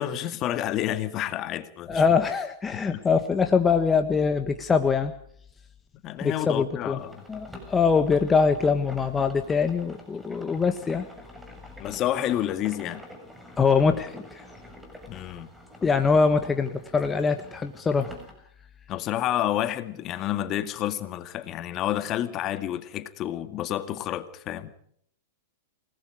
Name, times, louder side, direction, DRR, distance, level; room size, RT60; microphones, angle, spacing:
voice 1, 0.0-2.0 2.7-3.0 6.0-7.2 11.8-13.1 15.1-15.5 18.9-24.8, left 12 dB, 35° left, 2.1 m, -29 dB
voice 2, 1.9-5.1 6.2-7.0 7.3-11.1 13.6-14.4 15.8-18.1, left 5 dB, 15° left, 1.5 m, -23 dB
sound 1, 6.9-18.3, left 1 dB, 5° right, 6.7 m, -47 dB
28.5 x 19.5 x 5.0 m
hypercardioid pair, 115°, 0 cm